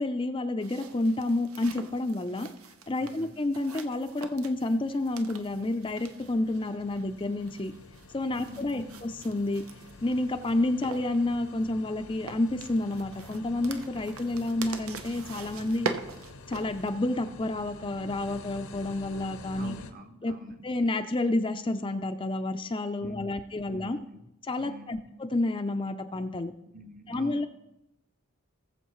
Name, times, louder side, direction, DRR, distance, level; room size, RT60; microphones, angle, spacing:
voice 1, 0.0-2.5 2.9-7.7 8.1-9.6 10.0-15.9 16.5-19.8 20.2-20.3 20.6-24.0 24.5-26.5 27.1-27.5, left 2 dB, 25° left, 7 dB, 0.4 m, -29 dB
sound 1, 0.6-16.9, right 4 dB, 80° right, 0.8 m, -43 dB
voice 2, 3.0-3.4 8.3-9.1 19.6-20.7 23.0-24.3 24.6-25.1 26.7-27.5, left 1 dB, 40° right, 7 dB, 0.9 m, -46 dB
sound 2, 3.3-19.9, left 3 dB, 80° left, 0.9 m, -49 dB
19.0 x 7.2 x 3.1 m, 0.88 s
head